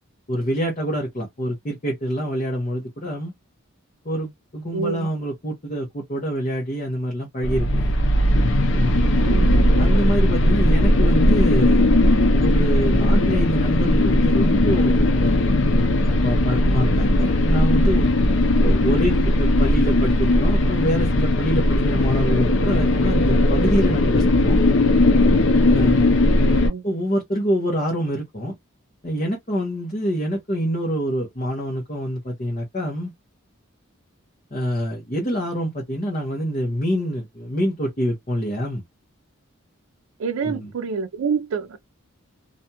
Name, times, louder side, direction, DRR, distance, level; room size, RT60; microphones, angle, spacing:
voice 1, 0.3-3.3 4.0-7.9 8.7-9.2 9.8-11.8 12.3-15.9 16.2-18.1 18.6-24.6 25.7-26.2 26.8-28.5 29.0-33.1 34.5-38.8 40.4-40.7, equal, 35° left, 0.8 m, -26 dB
voice 2, 4.7-5.1 9.2-9.5 26.6-26.9 40.2-41.8, right 5 dB, 85° right, 0.4 m, -27 dB
sound 1, 7.4-26.7, left 1 dB, 65° left, 0.5 m, -18 dB
2.5 x 2.3 x 2.7 m
head